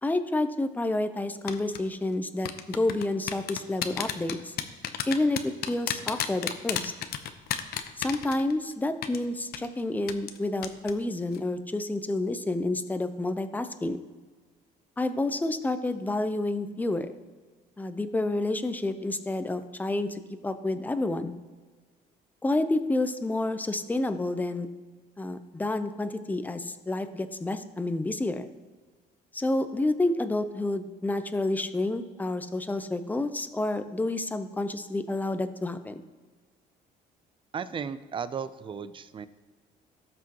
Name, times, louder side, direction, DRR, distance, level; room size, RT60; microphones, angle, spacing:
voice 1, 0.0-4.6 5.1-6.9 8.0-14.0 15.0-17.1 17.8-21.4 22.4-24.7 25.2-28.5 29.3-36.0, left 2 dB, 10° left, 10 dB, 0.6 m, -29 dB
sound 1, 1.5-1.8 2.4-8.7 9.0-9.2 9.5-9.7 10.1-10.4 10.6-10.9 11.2-11.4, left 10 dB, 65° left, 0.7 m, -31 dB
voice 2, 37.5-39.3, right 6 dB, 30° right, 14 dB, 0.5 m, -35 dB
17.5 x 6.1 x 3.0 m, 1.4 s
cardioid pair, 110°, 17 cm